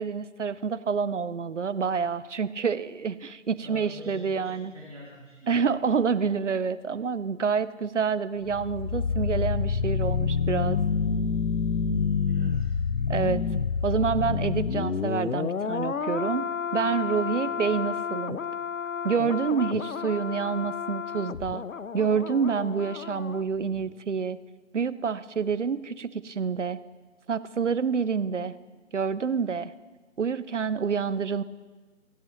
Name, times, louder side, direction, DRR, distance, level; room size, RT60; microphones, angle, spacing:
voice 1, 0.0-4.7 5.5-10.8 13.1-13.4 13.8-16.5 16.7-18.4 19.0-21.6 21.9-24.4 24.7-26.8 27.3-28.5 28.9-29.7 30.2-31.4, right 6 dB, 65° right, 17 dB, 0.6 m, -27 dB
voice 2, 3.6-5.6 12.3-12.8 17.4-17.5, equal, 25° right, -6 dB, 3.0 m, -46 dB
sound 1, 8.4-23.4 23.7-23.9, left 5 dB, 80° left, 0.7 m, -29 dB
16.0 x 16.0 x 3.0 m, 1.3 s
figure-of-eight pair, 160°, 40 cm